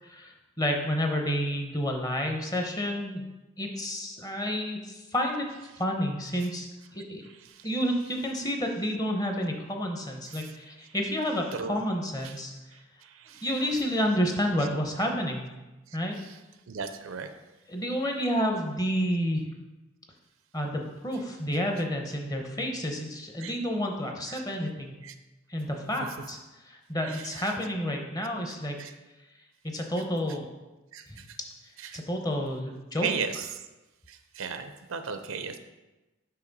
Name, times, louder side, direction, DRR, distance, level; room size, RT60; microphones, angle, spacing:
voice 1, 0.0-3.3 3.6-5.4 5.8-6.7 6.9-7.2 7.6-12.5 13.4-15.4 15.9-16.2 17.7-19.5 20.5-25.0 25.5-26.4 26.6-28.8 29.6-30.5 31.1-31.2 31.9-33.1, equal, 20° left, 3 dB, 0.7 m, -30 dB
voice 2, 16.7-17.3 23.4-23.5 25.0-25.1 27.1-27.2 28.8-28.9 30.9-31.2 31.8-32.0 33.0-33.5 34.1-35.6, right 5 dB, 85° right, 9 dB, 0.5 m, -35 dB
5.7 x 5.1 x 4.0 m, 1.1 s
head